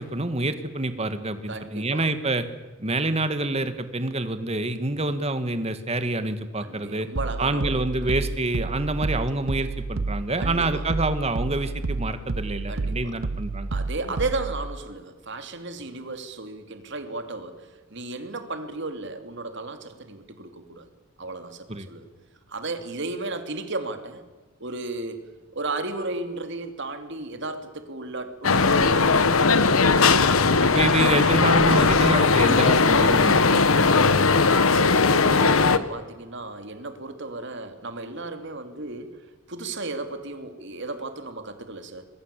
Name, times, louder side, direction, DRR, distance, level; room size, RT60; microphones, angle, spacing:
voice 1, 0.0-2.5 2.8-7.1 7.4-13.7 21.7-21.9 30.2-30.3 30.6-34.4, right 2 dB, 30° right, 10 dB, 1.9 m, -27 dB
voice 2, 1.5-2.1 6.6-8.1 10.4-10.9 12.7-13.2 13.7-20.9 21.2-22.0 22.5-24.2 24.6-25.2 25.5-29.7 34.6-42.1, right 2 dB, 55° right, 7 dB, 2.8 m, -34 dB
sound 1, 7.2-14.7, right 3 dB, 75° right, 0.8 m, -30 dB
sound 2, 28.4-35.8, left 4 dB, 80° left, 1.3 m, -18 dB
25.5 x 22.0 x 8.4 m, 1.3 s
head